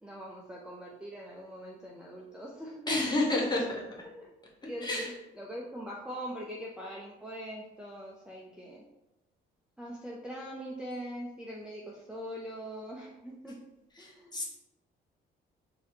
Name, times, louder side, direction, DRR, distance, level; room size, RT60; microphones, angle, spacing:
voice 1, 0.0-3.0 4.0-4.3 4.6-8.8 9.8-13.6 14.0-14.3, equal, 5° right, -3 dB, 0.5 m, -42 dB
voice 2, 2.9-3.8 4.8-5.1 14.0-14.4, left 2 dB, 20° left, -3 dB, 1.0 m, -29 dB
3.9 x 2.8 x 2.8 m, 0.92 s
cardioid pair, 90°, 20 cm